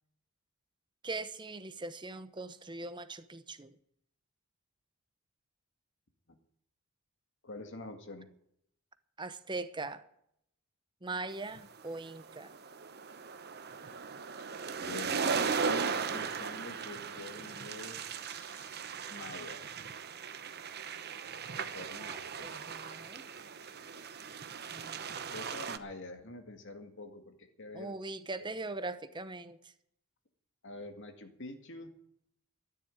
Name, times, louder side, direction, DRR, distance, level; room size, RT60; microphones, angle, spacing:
voice 1, 1.0-3.8 9.2-10.0 11.0-12.5 22.0-23.2 24.7-25.1 27.7-29.7, right 3 dB, 20° right, 0.9 m, -41 dB
voice 2, 7.4-8.3 14.8-18.7 19.1-19.6 21.6-22.6 25.1-27.9 28.4-28.5 30.6-31.9, left 2 dB, 55° left, 2.1 m, -46 dB
sound 1, 11.5-25.8, right 5 dB, 45° right, 1.0 m, -37 dB
13.5 x 10.5 x 9.0 m
head